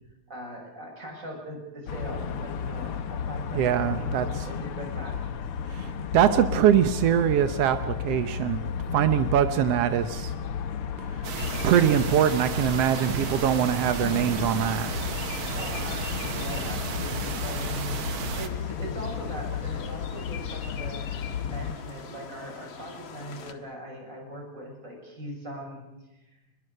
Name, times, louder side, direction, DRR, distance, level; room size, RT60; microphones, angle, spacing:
voice 1, 0.3-5.2 8.9-9.3 15.6-18.1 18.4-21.1 21.5-25.9, right 1 dB, 20° right, -1 dB, 7.0 m, -40 dB
sound 1, 1.9-21.7, left 7 dB, 70° left, 1.3 m, -33 dB
voice 2, 3.5-4.3 5.8-5.9 6.1-8.6 8.9-10.3 11.6-15.0, right 10 dB, 75° right, 9 dB, 1.4 m, -23 dB
sound 2, 11.2-18.5, right 6 dB, 60° right, 1.4 m, -34 dB
sound 3, 11.3-23.5, left 5 dB, 50° left, 1.6 m, -43 dB
24.0 x 21.5 x 6.7 m, 0.96 s
omnidirectional pair, 4.0 m